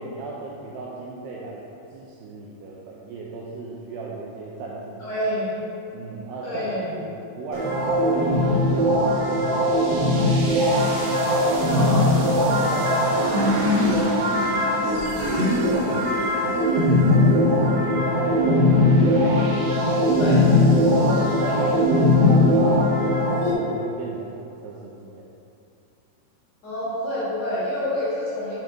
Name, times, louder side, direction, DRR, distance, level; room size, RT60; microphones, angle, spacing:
voice 1, 0.0-1.6 1.9-5.1 5.9-10.3 11.1-11.4 12.2-14.4 15.4-18.7 19.4-19.7 20.7-22.9 23.3-25.3, right 3 dB, 90° right, -4 dB, 2.3 m, -36 dB
voice 2, 5.0-5.6 6.4-6.9 11.6-12.1 20.2-20.5 21.0-21.3 26.6-28.6, left 1 dB, 85° left, -10 dB, 1.4 m, -28 dB
sound 1, 7.5-23.5, left 1 dB, 70° right, 2.3 m, -20 dB
Laughter / Crowd, 12.2-15.7, left 1 dB, 65° left, 1.6 m, -39 dB
7.0 x 5.7 x 3.9 m, 2.7 s
omnidirectional pair, 5.5 m